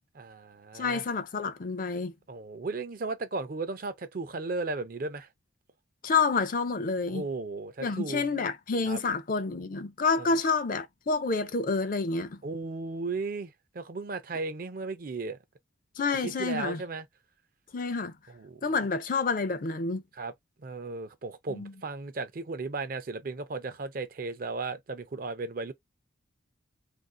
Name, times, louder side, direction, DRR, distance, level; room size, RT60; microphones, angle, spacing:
voice 1, 0.2-1.0 2.3-5.3 7.1-8.3 8.9-9.0 10.2-10.4 12.4-15.4 16.2-17.1 18.3-18.7 20.1-20.3 20.6-25.7, right 3 dB, 45° right, 0.5 m, -35 dB
voice 2, 0.7-2.1 6.0-7.2 7.8-12.4 16.0-16.8 17.7-18.1 18.6-20.0 21.5-21.7, left 4 dB, 40° left, 0.4 m, -28 dB
2.5 x 2.4 x 3.6 m
head